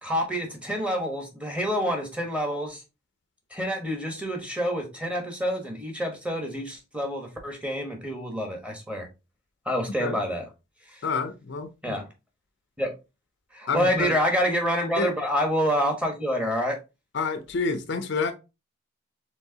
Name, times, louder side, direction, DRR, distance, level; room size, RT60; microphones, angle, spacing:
voice 1, 0.0-2.8 3.5-9.1 9.6-10.5 10.9-11.0 11.8-12.1 12.8-12.9 13.5-16.8, equal, 5° right, 1.1 m, -27 dB
voice 2, 11.0-12.0 13.7-14.1 15.0-15.1 17.1-18.3, left 4 dB, 60° left, 0.6 m, -28 dB
4.6 x 3.6 x 2.8 m
head